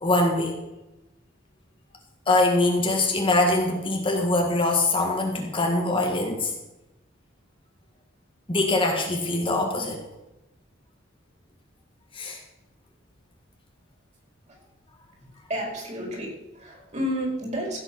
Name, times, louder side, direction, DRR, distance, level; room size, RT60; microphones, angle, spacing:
voice 1, 0.0-0.5 2.3-6.5 8.5-10.0 12.1-12.4, left 2 dB, 25° left, 1 dB, 1.8 m, -23 dB
voice 2, 15.2-17.8, equal, 35° right, -2 dB, 5.0 m, -31 dB
16.0 x 7.8 x 5.9 m, 0.98 s
head